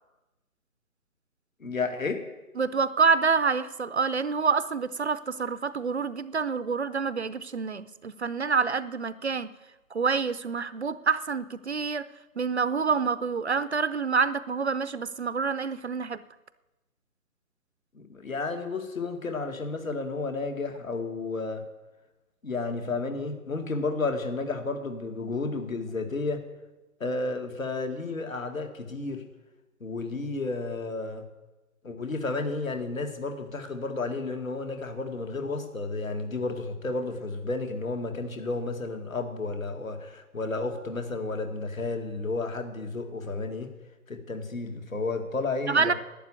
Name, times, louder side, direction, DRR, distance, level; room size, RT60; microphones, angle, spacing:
voice 1, 1.6-2.2 17.9-21.6 22.4-26.4 27.0-29.2 29.8-31.3 31.8-43.7 44.1-45.9, left 3 dB, 65° left, 6 dB, 2.1 m, -32 dB
voice 2, 2.6-9.5 9.9-12.1 12.4-16.2 45.7-45.9, right 5 dB, 50° right, 15 dB, 0.6 m, -27 dB
11.5 x 8.9 x 9.3 m, 1.1 s
figure-of-eight pair, 145°, 44 cm